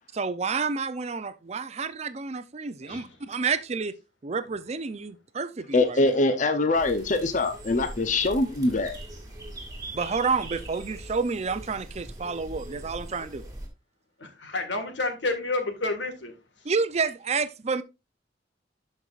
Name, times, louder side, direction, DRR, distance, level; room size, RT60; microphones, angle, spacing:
voice 1, 0.1-3.9 4.2-6.1 9.9-13.4 16.6-17.8, right 5 dB, 35° right, 0.5 m, -29 dB
voice 2, 5.7-8.9, left 2 dB, 45° left, 0.7 m, -23 dB
sound 1, 6.7-13.7, right 1 dB, 20° right, 1.9 m, -41 dB
voice 3, 14.2-16.3, left 2 dB, 80° left, 1.8 m, -30 dB
12.0 x 5.4 x 2.4 m
head